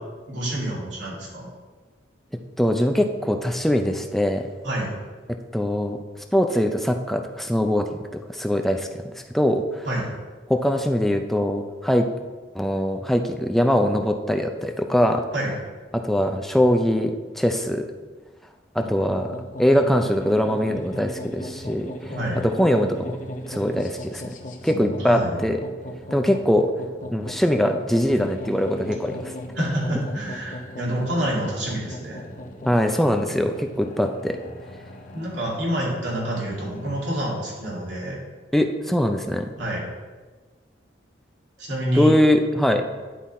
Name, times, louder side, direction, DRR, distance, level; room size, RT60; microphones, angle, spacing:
voice 1, 0.3-1.5 4.6-4.9 9.9-10.1 15.3-15.5 18.8-19.0 22.0-22.4 24.7-25.4 29.5-32.2 35.1-38.2 39.6-39.8 41.6-42.1, right 1 dB, 75° right, -5 dB, 2.5 m, -27 dB
voice 2, 2.6-4.5 5.3-6.0 6.3-7.9 8.3-8.9 9.1-9.9 10.5-12.1 12.5-15.2 15.9-17.9 18.7-22.1 22.4-23.2 23.5-24.2 24.6-25.6 26.1-26.7 27.1-29.3 32.7-34.4 38.5-39.5 42.0-42.9, equal, ahead, 5 dB, 0.4 m, -22 dB
sound 1, 19.1-37.9, left 1 dB, 45° left, 0.7 m, -38 dB
10.0 x 3.9 x 4.2 m, 1.4 s
head